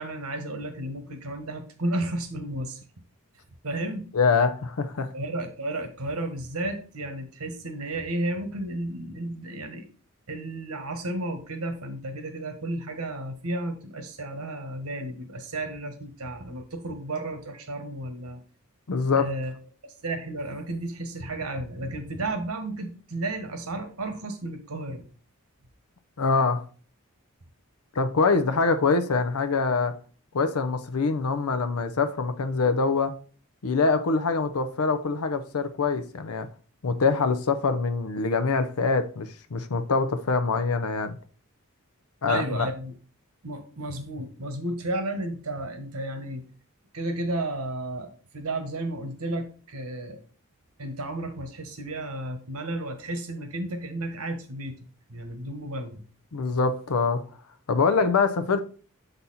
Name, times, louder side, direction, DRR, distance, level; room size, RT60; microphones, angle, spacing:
voice 1, 0.0-2.8 3.6-4.1 5.1-9.9 10.3-18.4 19.1-19.6 19.8-25.0 42.3-42.9 43.4-46.4 46.9-50.2 50.8-56.0, right 1 dB, 80° right, 1.3 m, -33 dB
voice 2, 4.1-5.1 18.9-19.3 26.2-26.6 28.0-29.9 30.3-33.1 33.6-36.5 36.8-41.2 42.2-42.7 56.3-57.2 57.7-58.6, left 4 dB, 85° left, 0.6 m, -24 dB
7.0 x 4.1 x 4.1 m
head